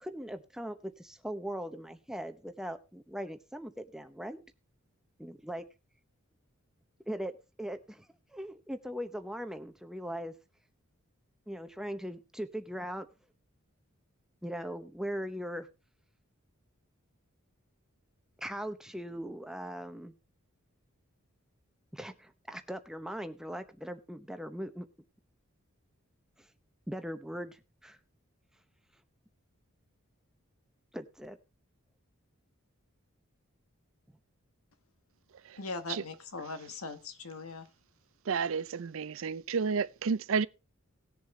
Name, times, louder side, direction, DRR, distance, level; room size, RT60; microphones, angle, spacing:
voice 1, 0.0-4.4 5.2-5.7 7.1-10.3 11.5-13.1 14.4-15.7 18.4-20.1 21.9-24.9 26.4-26.5 26.9-28.0 30.9-31.4, equal, ahead, 0.7 m, -40 dB
voice 2, 35.6-37.7, left 3 dB, 80° left, 1.4 m, -40 dB
voice 3, 38.3-40.5, right 5 dB, 65° right, 0.5 m, -31 dB
18.5 x 7.2 x 3.2 m
head